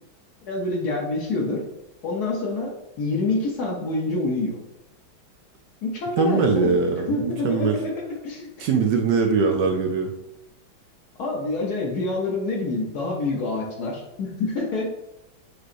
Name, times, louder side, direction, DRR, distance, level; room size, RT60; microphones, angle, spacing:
voice 1, 0.4-1.6 2.0-4.6 5.8-8.7 11.2-14.9, left 2 dB, 60° left, -1 dB, 1.1 m, -27 dB
voice 2, 6.2-7.8 8.6-10.1, right 5 dB, 75° right, 3 dB, 1.1 m, -21 dB
6.4 x 3.1 x 2.5 m, 0.87 s
omnidirectional pair, 2.2 m